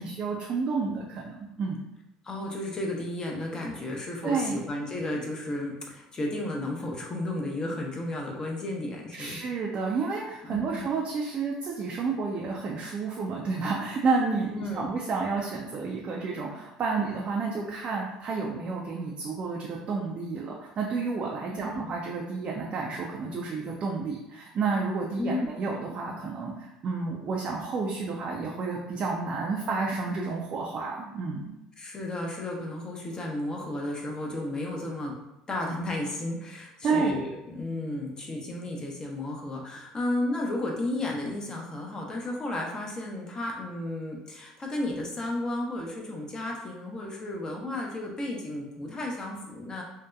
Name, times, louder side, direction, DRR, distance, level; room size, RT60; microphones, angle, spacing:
voice 1, 0.0-1.8 4.2-4.6 9.1-31.5 36.8-37.1, right 4 dB, 45° right, -1 dB, 0.4 m, -30 dB
voice 2, 2.2-9.4 10.5-10.8 14.5-14.9 21.5-21.8 25.2-25.5 31.8-35.2 35.5-49.8, left 1 dB, 30° left, -1 dB, 0.6 m, -33 dB
2.7 x 2.1 x 2.2 m, 0.89 s
hypercardioid pair, 75°, 3 cm